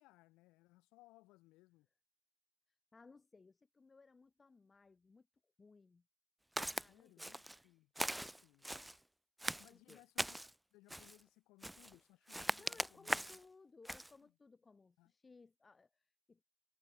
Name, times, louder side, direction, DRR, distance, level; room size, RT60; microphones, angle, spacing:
voice 1, 0.0-1.9 6.9-8.7 9.6-13.3 14.2-14.3 15.0-15.1, left 20 dB, 75° left, 6.3 m, -66 dB
voice 2, 2.7-5.3 5.6-6.1 6.7-7.4 9.7-10.0 12.2-16.4, left 4 dB, 25° left, 5.2 m, -63 dB
Walk footsteps, 6.6-6.9 7.2-7.6 8.0-9.0 9.4-10.5 10.9-11.2 11.6-12.0 12.3-13.4 13.9-14.1, right 1 dB, 5° right, 0.3 m, -40 dB
supercardioid pair, 75°, 0 cm